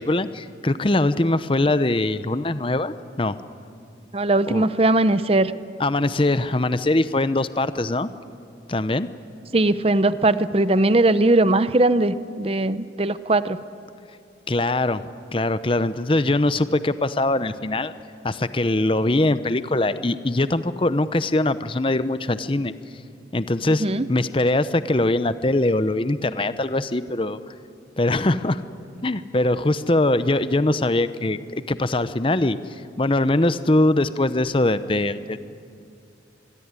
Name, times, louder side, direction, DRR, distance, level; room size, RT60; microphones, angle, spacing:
voice 1, 0.0-3.4 4.5-4.6 5.8-8.1 8.7-9.1 14.5-15.0 15.3-17.9 18.2-22.7 23.3-27.4 28.0-28.6 29.0-32.6 33.0-35.4, left 2 dB, 30° left, 13 dB, 0.7 m, -22 dB
voice 2, 4.1-5.5 9.5-13.6 23.8-24.0, right 2 dB, 30° right, 14 dB, 0.7 m, -19 dB
26.0 x 21.5 x 9.7 m, 2.5 s
head